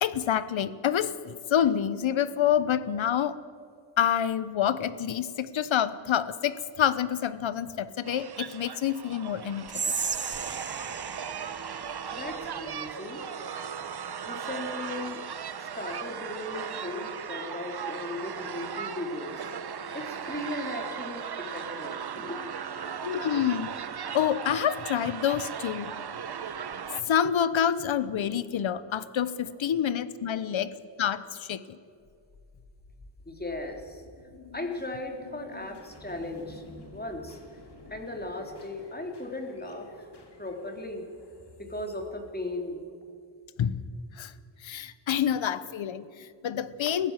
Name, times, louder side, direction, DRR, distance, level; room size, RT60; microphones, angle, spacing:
voice 1, 0.0-3.4 4.0-9.9 23.0-23.7 24.1-25.9 27.1-30.7 31.0-31.8 43.6-43.8 44.2-44.3 44.6-47.1, left 9 dB, 80° left, 15 dB, 1.1 m, -27 dB
sound 1, 8.0-27.0, right 7 dB, 55° right, 1.2 m, -37 dB
Whispering, 9.7-12.9, right 5 dB, 25° right, 0.6 m, -35 dB
voice 2, 12.1-13.2 14.3-15.2 15.6-22.8 30.3-30.5 33.3-34.0 34.5-36.6 36.9-37.4 37.9-39.9 40.4-41.1 41.6-42.8, left 2 dB, 20° left, 3 dB, 3.5 m, -37 dB
sound 2, 32.0-43.1, left 3 dB, 60° left, 3.8 m, -51 dB
22.5 x 15.5 x 7.5 m, 2.4 s
cardioid pair, 80°, 46 cm